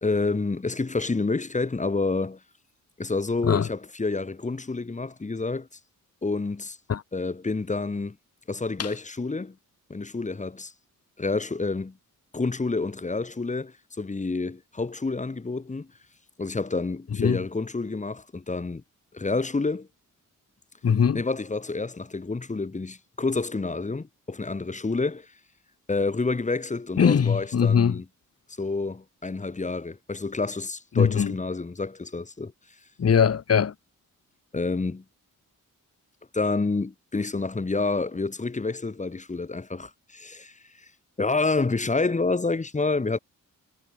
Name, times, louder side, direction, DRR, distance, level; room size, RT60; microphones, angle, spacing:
voice 1, 0.0-2.4 3.0-5.7 6.2-6.8 7.1-8.2 8.5-9.6 9.9-10.7 11.2-12.0 12.3-15.9 16.4-18.8 19.1-19.9 21.1-25.3 25.9-28.1 28.6-32.5 34.5-35.0 36.3-40.9 41.2-43.2, left 3 dB, 20° left, 1.4 m, -28 dB
voice 2, 20.8-21.2 27.0-28.0 30.9-31.3 33.0-33.7, left 7 dB, 45° left, 1.3 m, -21 dB
cardioid pair, 85°, 33 cm